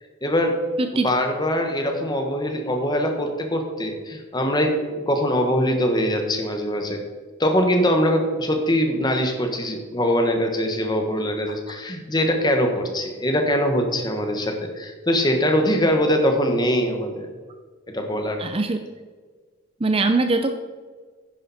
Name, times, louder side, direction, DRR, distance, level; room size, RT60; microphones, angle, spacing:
voice 1, 0.2-0.6 1.0-7.0 7.4-17.3 17.9-18.4, equal, 20° left, 4 dB, 1.4 m, -22 dB
voice 2, 0.8-1.1 18.4-18.8 19.8-20.6, right 3 dB, 25° right, 7 dB, 0.5 m, -22 dB
10.0 x 10.0 x 4.2 m, 1.4 s
head